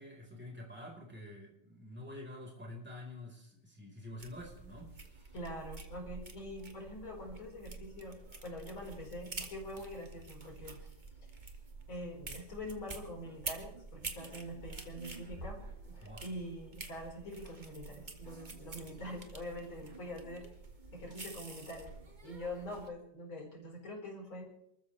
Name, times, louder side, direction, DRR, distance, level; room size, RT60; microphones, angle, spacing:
voice 1, 0.0-5.4 16.0-16.2, left 1 dB, 5° right, -1 dB, 4.4 m, -48 dB
sound 1, 4.2-22.9, right 3 dB, 25° right, 1.7 m, -48 dB
voice 2, 5.3-8.2 8.4-10.9 11.2-11.3 11.9-15.6 15.9-20.5 20.9-21.9 22.2-24.5, left 1 dB, 85° left, -1 dB, 5.4 m, -44 dB
28.5 x 14.0 x 3.3 m, 0.81 s
omnidirectional pair, 2.2 m